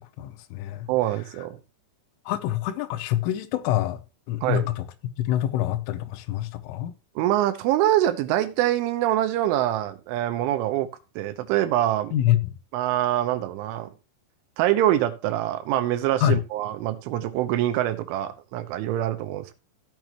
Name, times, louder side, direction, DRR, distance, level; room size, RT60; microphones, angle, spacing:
voice 1, 0.2-0.9 2.3-4.0 4.3-6.9 12.1-12.4 16.2-16.4, left 12 dB, 85° left, 3.4 m, -26 dB
voice 2, 0.9-1.6 4.4-4.6 7.2-10.9 11.2-12.1 12.7-13.9 14.6-19.5, right 13 dB, 85° right, 3.3 m, -24 dB
15.0 x 6.9 x 3.0 m
omnidirectional pair, 5.6 m